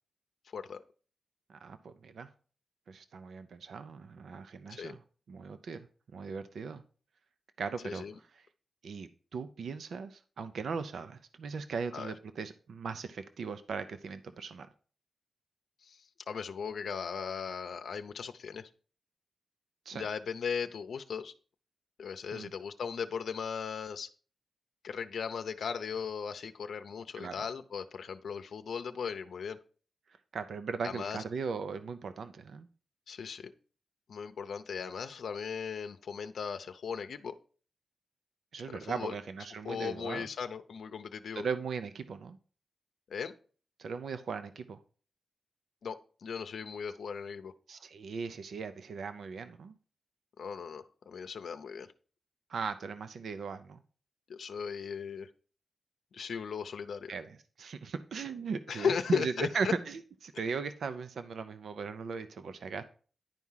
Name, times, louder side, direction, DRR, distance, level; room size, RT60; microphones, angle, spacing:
voice 1, 1.5-2.3 2.9-5.0 5.3-5.9 6.1-6.8 7.6-8.0 8.3-8.5 8.8-14.7 19.9-20.1 22.3-22.5 27.2-27.3 30.3-32.7 38.5-40.3 41.3-42.4 43.8-44.8 47.7-49.8 52.5-53.8 57.1-62.8, right 5 dB, 80° right, 0.6 m, -38 dB
voice 2, 15.8-18.7 19.9-21.3 22.0-24.1 24.8-29.6 30.8-31.2 33.1-33.5 34.1-37.3 38.7-39.1 39.6-41.4 43.1-43.3 45.8-46.0 46.2-47.5 50.4-51.9 54.3-55.3 56.1-57.1 58.7-59.7, left 6 dB, 80° left, 0.6 m, -37 dB
10.5 x 4.8 x 5.6 m
wide cardioid pair, 110°, 0 cm